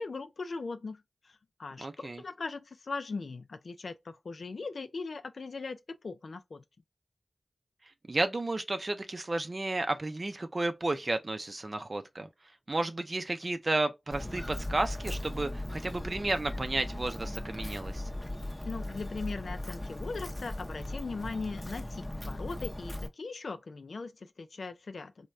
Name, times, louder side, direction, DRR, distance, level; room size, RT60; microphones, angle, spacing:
voice 1, 0.0-6.6 18.6-25.3, left 4 dB, 80° left, 0.4 m, -39 dB
voice 2, 1.8-2.2 8.1-12.3 12.7-18.0, right 2 dB, 50° right, 0.5 m, -32 dB
Walk footsteps, 14.1-23.1, left 1 dB, 15° left, 0.6 m, -38 dB
3.1 x 2.2 x 2.3 m
cardioid pair, 45°, 0 cm